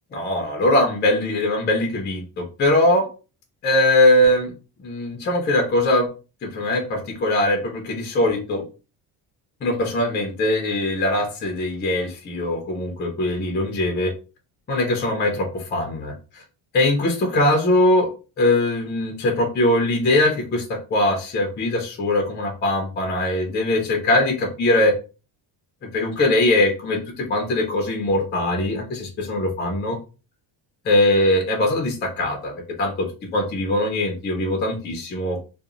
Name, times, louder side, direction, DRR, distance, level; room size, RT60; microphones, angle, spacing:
voice 1, 0.1-3.1 3.6-4.5 4.8-6.1 6.4-8.6 9.6-14.1 14.7-16.4 16.7-18.1 18.4-24.9 25.8-30.0 30.8-32.5 32.8-35.4, left 1 dB, 25° left, 2 dB, 0.4 m, -21 dB
2.4 x 2.0 x 2.9 m, 0.33 s
cardioid pair, 150°, 44 cm